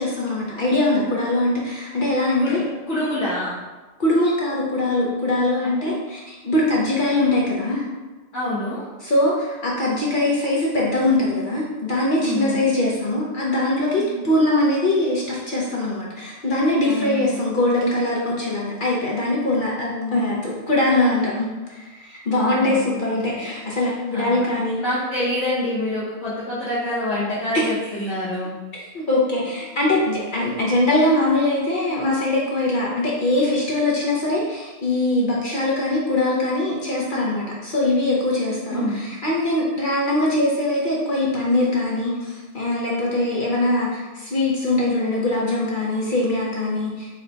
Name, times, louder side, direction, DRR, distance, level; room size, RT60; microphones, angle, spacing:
voice 1, 0.0-2.6 4.0-7.8 9.0-24.8 27.5-27.7 28.0-28.1 28.7-47.1, left 1 dB, 50° left, -4 dB, 0.7 m, -22 dB
voice 2, 2.4-3.6 5.6-5.9 8.3-8.8 12.2-12.6 14.0-14.2 16.9-17.4 19.9-20.2 22.3-23.0 23.8-24.5 24.8-28.5 38.7-39.0, left 1 dB, 65° left, -9 dB, 1.2 m, -27 dB
4.2 x 2.2 x 3.8 m, 1.2 s
omnidirectional pair, 1.4 m